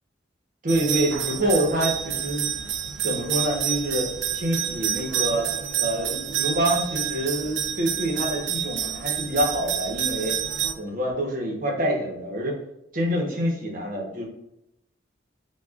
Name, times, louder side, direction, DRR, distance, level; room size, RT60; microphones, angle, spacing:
voice 1, 0.6-2.5 3.0-5.5 5.8-10.4 10.8-12.5 12.9-14.2, right 1 dB, 50° right, -1 dB, 1.0 m, -26 dB
sound 1, 0.7-10.7, right 9 dB, 85° right, 0.4 m, -28 dB
5.8 x 2.4 x 2.4 m, 0.81 s
head